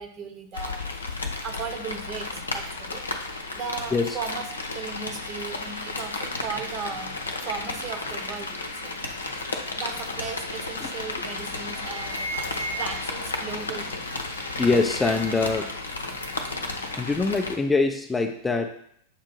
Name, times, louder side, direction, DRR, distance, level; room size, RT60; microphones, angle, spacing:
voice 1, 0.0-3.0 3.5-9.3 9.7-14.4, right 5 dB, 35° right, 6 dB, 0.9 m, -37 dB
Rain, 0.5-17.6, left 3 dB, 75° left, 0.7 m, -33 dB
sound 1, 11.1-11.3 11.6-13.3 14.1-15.6 15.8-16.6, right 2 dB, 75° right, 0.8 m, -38 dB
voice 2, 14.6-15.8 16.9-18.8, left 3 dB, 10° left, 4 dB, 0.4 m, -24 dB
7.3 x 2.7 x 5.3 m, 0.67 s
figure-of-eight pair, 90°, 0 cm